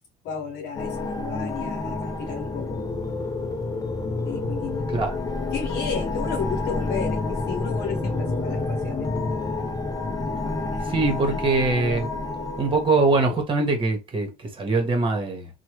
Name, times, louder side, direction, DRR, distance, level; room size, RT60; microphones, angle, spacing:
voice 1, 0.2-2.8 4.2-4.9 5.5-9.1 10.7-10.9 11.2-11.3, left 6 dB, 75° left, 0.8 m, -33 dB
sound 1, 0.8-13.4, left 3 dB, 20° left, 0.6 m, -29 dB
voice 2, 10.9-12.1 12.6-15.5, right 3 dB, 30° right, 1.2 m, -22 dB
3.1 x 2.2 x 3.0 m
cardioid pair, 110°, 17 cm